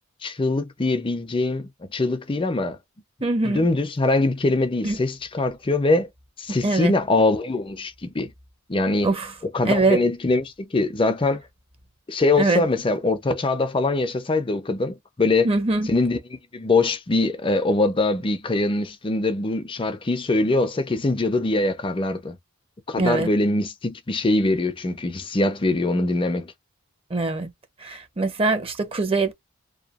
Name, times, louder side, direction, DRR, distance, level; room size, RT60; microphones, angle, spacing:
voice 1, 0.2-2.8 3.4-6.1 6.4-8.3 8.7-9.1 9.5-11.4 12.1-15.5 15.8-22.4 22.9-26.5, left 2 dB, 25° left, 0.4 m, -23 dB
voice 2, 3.2-3.7 4.8-5.0 6.6-6.9 9.0-9.3 9.7-10.0 12.4-12.6 15.4-15.9 23.0-23.3 27.1-27.5 27.8-29.3, right 3 dB, 25° right, 0.6 m, -22 dB
2.7 x 2.3 x 2.3 m
head